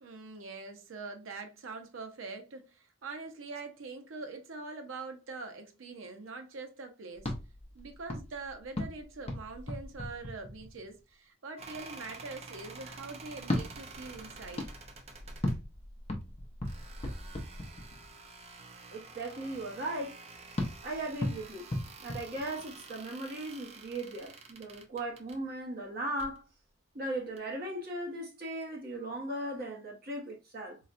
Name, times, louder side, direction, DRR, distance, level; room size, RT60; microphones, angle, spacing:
voice 1, 0.0-7.3 7.7-14.7, right 3 dB, 85° right, 0.6 m, -44 dB
sound 1, 7.1-11.0 13.4-18.2 20.6-23.0, left 1 dB, 30° left, 0.5 m, -38 dB
sound 2, 11.6-15.6 16.6-25.4 26.1-26.4 27.4-27.5, right 3 dB, 30° right, 0.4 m, -49 dB
voice 2, 18.9-20.2 20.8-21.7 22.0-26.5 26.9-30.8, right 1 dB, 50° right, 0.8 m, -37 dB
3.9 x 2.1 x 2.4 m
head